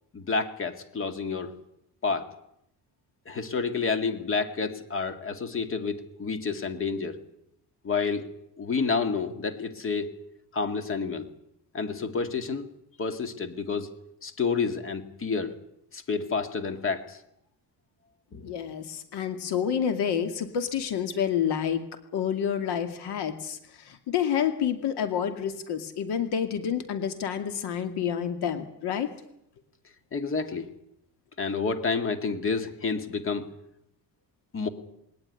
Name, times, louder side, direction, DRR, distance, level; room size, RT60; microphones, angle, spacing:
voice 1, 0.1-1.5 2.0-2.3 3.3-7.2 7.8-8.3 8.6-10.1 10.5-11.3 11.7-12.7 13.0-13.9 14.2-15.5 15.9-17.2 18.3-18.5 30.1-30.7 31.4-33.5 34.5-34.7, left 4 dB, 30° left, 9 dB, 2.2 m, -29 dB
voice 2, 18.4-21.8 22.1-23.6 23.8-29.1, left 8 dB, 75° left, 9 dB, 2.5 m, -28 dB
21.0 x 19.0 x 9.9 m, 0.77 s
cardioid pair, 165°, 40 cm